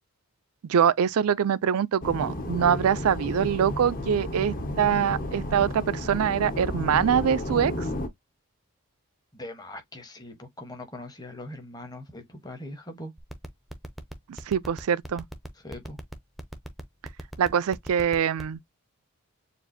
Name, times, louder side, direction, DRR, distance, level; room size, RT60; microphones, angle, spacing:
voice 1, 0.7-7.9 14.5-15.2 17.4-18.6, right 8 dB, 75° right, 0.4 m, -24 dB
sound 1, 2.0-8.1, left 1 dB, 40° left, 1.0 m, -32 dB
voice 2, 9.3-13.1 15.6-16.0, left 1 dB, 15° left, 1.0 m, -41 dB
sound 2, 13.2-18.5, right 1 dB, ahead, 0.6 m, -38 dB
6.9 x 2.5 x 2.7 m
head